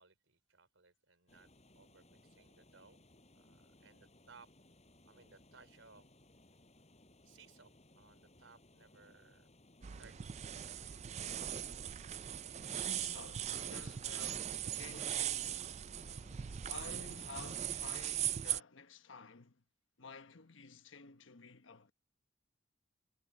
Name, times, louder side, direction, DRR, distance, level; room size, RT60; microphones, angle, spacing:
voice 1, 0.0-1.5 1.7-3.0 3.3-4.5 5.0-6.1 7.2-9.5 9.9-10.6, right 4 dB, 85° right, 4.4 m, -63 dB
sound 1, 1.3-17.7, left 1 dB, 35° left, 7.0 m, -64 dB
sound 2, 9.8-18.6, right 10 dB, 35° right, 0.4 m, -40 dB
voice 2, 12.6-15.8 16.6-19.6 20.0-21.9, left 4 dB, 80° left, 1.2 m, -52 dB
head